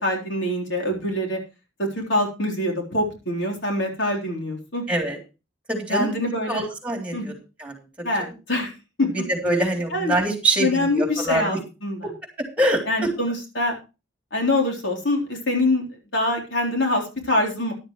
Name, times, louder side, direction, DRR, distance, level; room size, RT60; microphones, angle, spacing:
voice 1, 0.0-1.4 1.8-4.8 5.9-6.6 7.1-7.3 8.0-8.7 9.0-9.1 9.9-10.2 10.6-12.1 12.9-13.7 14.3-15.8 16.1-17.7, left 1 dB, 85° left, 0 dB, 3.9 m, -24 dB
voice 2, 4.9-5.2 5.7-6.1 6.5-7.3 7.6-7.8 9.1-11.6 12.6-13.1, right 1 dB, 5° right, 2 dB, 3.5 m, -24 dB
13.5 x 11.5 x 3.2 m, 0.29 s
head